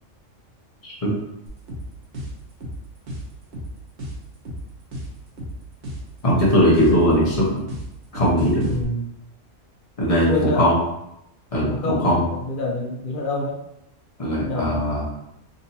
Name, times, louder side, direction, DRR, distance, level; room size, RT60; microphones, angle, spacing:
sound 1, 1.5-8.8, equal, 70° right, 1.1 m, -34 dB
voice 1, 6.2-7.6 8.1-8.7 10.0-10.7 11.5-12.2 14.2-15.0, equal, 30° left, -5 dB, 1.1 m, -19 dB
voice 2, 8.6-9.0 10.3-10.7 11.7-13.6 14.4-14.8, left 2 dB, 55° left, 1 dB, 0.6 m, -26 dB
3.8 x 2.7 x 2.7 m, 0.82 s
omnidirectional pair, 1.3 m